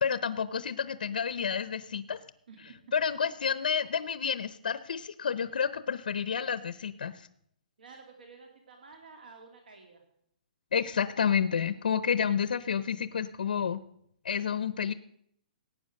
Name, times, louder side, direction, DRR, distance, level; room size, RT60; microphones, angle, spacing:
voice 1, 0.0-2.2 2.9-7.3 10.7-13.8 14.2-14.9, left 7 dB, 70° left, 14 dB, 0.7 m, -30 dB
voice 2, 2.5-2.8 7.8-10.0, right 4 dB, 75° right, 4 dB, 2.4 m, -51 dB
17.5 x 9.0 x 6.4 m, 0.72 s
hypercardioid pair, 175°, 5 cm